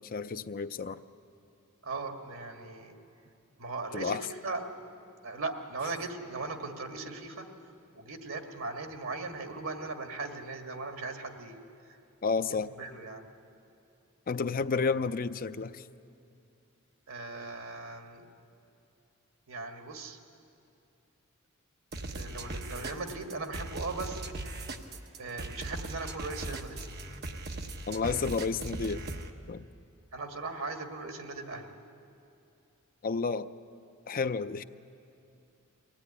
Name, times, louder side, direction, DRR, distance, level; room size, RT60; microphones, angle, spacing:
voice 1, 0.1-1.0 3.9-4.2 12.2-12.7 14.3-15.8 27.9-29.0 29.5-29.7 33.0-33.5 34.1-34.6, left 4 dB, 45° left, 11 dB, 0.5 m, -31 dB
voice 2, 1.8-3.0 3.6-4.6 5.2-7.5 7.9-11.6 12.8-13.3 17.1-18.3 19.5-20.2 22.1-24.2 25.2-26.9 30.1-31.8, right 3 dB, 90° right, 5 dB, 1.9 m, -38 dB
sound 1, 21.9-29.3, right 2 dB, 50° right, 1.2 m, -39 dB
23.5 x 17.0 x 9.8 m, 2.6 s
head